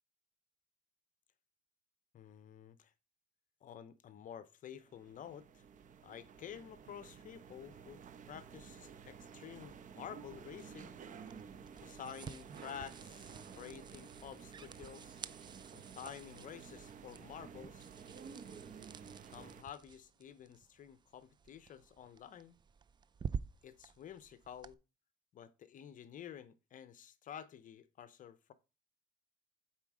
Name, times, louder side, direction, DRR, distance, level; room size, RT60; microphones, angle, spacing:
voice 1, 2.1-2.9 3.6-5.6 6.0-8.0 8.3-10.9 11.8-15.2 15.7-17.9 19.3-22.6 23.6-24.8 25.3-28.5, left 9 dB, 50° left, 0.7 m, -51 dB
sound 1, 4.8-19.6, right 6 dB, 50° right, 0.9 m, -53 dB
sound 2, 11.2-24.7, right 6 dB, 25° right, 0.4 m, -50 dB
7.5 x 4.4 x 4.8 m
cardioid pair, 110°, 17 cm